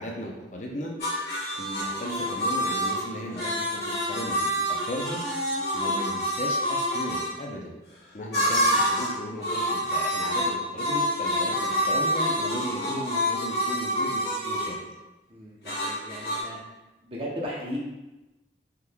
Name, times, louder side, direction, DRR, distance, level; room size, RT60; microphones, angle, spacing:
voice 1, 0.0-7.8 8.1-15.0, equal, 45° left, 0 dB, 0.5 m, -36 dB
sound 1, 1.0-7.3 8.3-9.2 9.4-14.8 15.6-16.4, equal, 65° left, 1.3 m, -27 dB
voice 2, 15.3-16.6 17.0-17.8, equal, 30° right, -4 dB, 0.7 m, -36 dB
3.6 x 3.0 x 2.2 m, 1.0 s
head